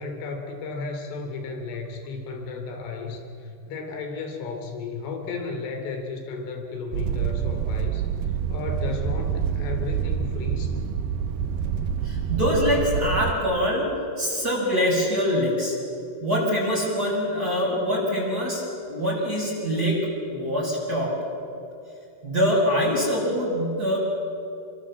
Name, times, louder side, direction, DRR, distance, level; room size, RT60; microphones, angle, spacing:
voice 1, 0.0-8.0 8.5-10.7, left 4 dB, 80° left, 5 dB, 5.7 m, -34 dB
sound 1, 6.9-13.3, right 7 dB, 80° right, 2.0 m, -27 dB
voice 2, 12.0-15.8 16.2-21.2 22.2-24.0, equal, 20° right, -4 dB, 7.0 m, -24 dB
29.5 x 25.0 x 7.7 m, 2.6 s
omnidirectional pair, 5.6 m